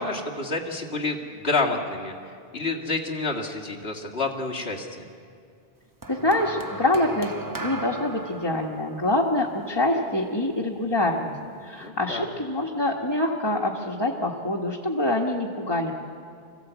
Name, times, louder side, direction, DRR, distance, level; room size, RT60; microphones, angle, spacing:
voice 1, 0.0-2.1 2.5-5.0 11.8-12.3, left 3 dB, 75° left, 1 dB, 2.3 m, -28 dB
sound 1, 6.0-10.5 11.4-11.6, right 2 dB, 20° right, 0.8 m, -38 dB
voice 2, 6.1-7.3 7.6-11.3 11.6-15.9, left 1 dB, 25° left, -1 dB, 1.5 m, -25 dB
25.0 x 16.0 x 8.2 m, 2.3 s
omnidirectional pair, 1.1 m